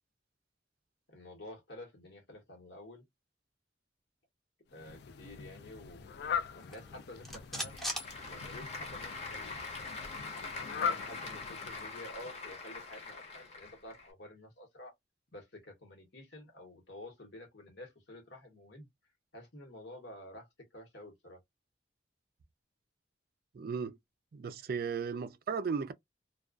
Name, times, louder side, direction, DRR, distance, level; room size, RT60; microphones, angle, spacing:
voice 1, 1.1-3.0 4.7-6.3 6.5-7.7 8.3-9.6 10.6-14.9 15.3-18.9 19.3-20.5 20.7-21.4, left 1 dB, 80° left, 1.1 m, -50 dB
Fowl, 4.7-12.1, left 7 dB, 65° left, 0.3 m, -41 dB
sound 1, 6.6-9.0 9.3-9.4 9.7-11.6, equal, ahead, 0.6 m, -43 dB
Applause / Crowd, 7.3-14.1, left 3 dB, 40° left, 0.8 m, -43 dB
voice 2, 23.5-24.0 24.3-25.9, right 5 dB, 55° right, 0.4 m, -35 dB
2.3 x 2.2 x 2.3 m
head